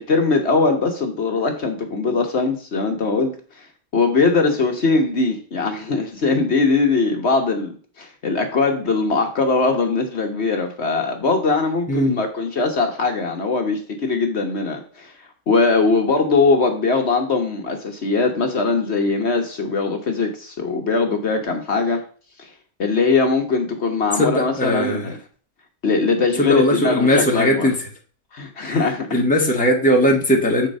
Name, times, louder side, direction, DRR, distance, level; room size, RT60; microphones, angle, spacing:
voice 1, 0.1-3.7 3.9-15.1 15.5-22.0 22.4-22.5 22.8-25.2 25.8-27.7 28.3-29.2, left 4 dB, 60° left, 4 dB, 1.3 m, -21 dB
voice 2, 24.2-25.0 26.4-27.7 28.6-28.8 29.1-30.7, equal, 5° left, -1 dB, 1.3 m, -18 dB
7.2 x 4.4 x 5.3 m, 0.42 s
omnidirectional pair, 1.4 m